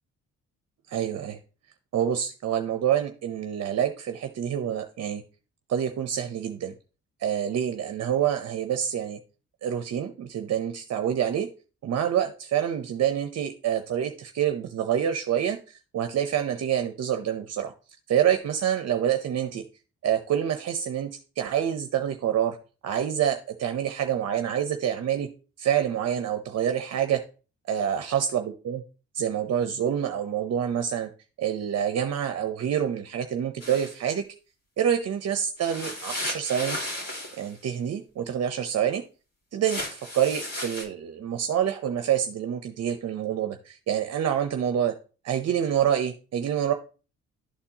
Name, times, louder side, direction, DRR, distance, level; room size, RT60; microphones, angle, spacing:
voice 1, 0.9-1.4 1.9-5.2 5.7-6.7 7.2-9.2 9.6-11.5 11.8-17.7 18.1-19.6 20.0-22.6 22.8-25.3 25.6-27.2 27.7-28.8 29.1-31.1 31.4-34.3 34.8-36.8 37.4-39.0 39.5-44.9 45.2-46.7, right 9 dB, 55° right, 7 dB, 0.8 m, -27 dB
sound 1, 33.6-33.9 35.6-37.5 39.6-40.8, left 1 dB, 55° left, 4.0 m, -34 dB
11.5 x 4.4 x 2.8 m, 0.35 s
cardioid pair, 90°, 30 cm